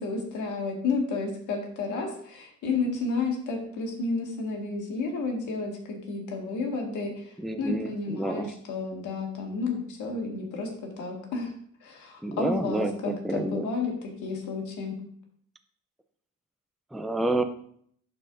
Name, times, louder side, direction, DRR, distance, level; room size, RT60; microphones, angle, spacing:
voice 1, 0.0-10.7 11.0-11.5 11.8-15.0, left 3 dB, 80° left, 1 dB, 1.8 m, -31 dB
voice 2, 7.4-8.5 12.2-13.7 16.9-17.4, right 1 dB, ahead, 8 dB, 0.4 m, -29 dB
11.5 x 4.4 x 2.5 m, 0.63 s
cardioid pair, 90°, 30 cm